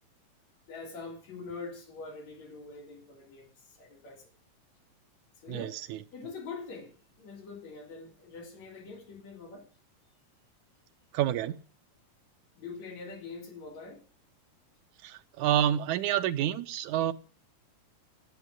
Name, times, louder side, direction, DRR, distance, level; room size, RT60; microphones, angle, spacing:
voice 1, 0.7-3.5 3.8-4.2 5.4-5.8 6.1-9.7 12.6-14.0, left 4 dB, 65° left, 4.6 m, -44 dB
voice 2, 5.5-6.0 11.1-11.6 15.0-17.1, right 11 dB, 85° right, 2.3 m, -28 dB
10.5 x 8.9 x 9.6 m
omnidirectional pair, 3.4 m